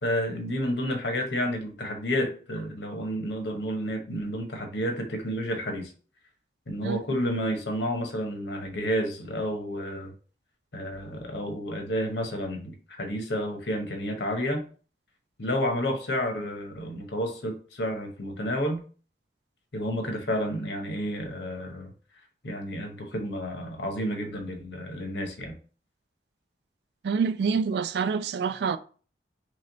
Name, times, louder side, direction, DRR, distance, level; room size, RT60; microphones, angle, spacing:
voice 1, 0.0-5.9 6.7-10.1 10.7-14.6 15.4-18.8 19.7-21.9 22.4-25.6, equal, 80° left, 0.9 m, -30 dB
voice 2, 27.0-28.8, right 5 dB, 70° right, 0.3 m, -26 dB
3.2 x 3.1 x 3.8 m
head